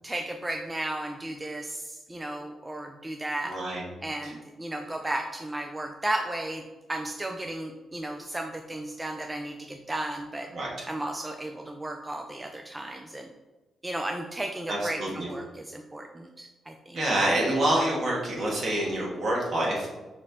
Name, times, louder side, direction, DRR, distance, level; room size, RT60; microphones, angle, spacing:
voice 1, 0.0-3.6 4.0-6.6 6.9-10.5 10.9-13.3 13.8-17.0, right 1 dB, 15° right, 3 dB, 0.3 m, -34 dB
voice 2, 3.4-3.8 4.2-4.3 10.5-10.7 14.7-15.3 16.9-19.9, right 1 dB, 55° right, -3 dB, 1.5 m, -27 dB
5.8 x 3.1 x 2.9 m, 1.1 s
cardioid pair, 125°, 0 cm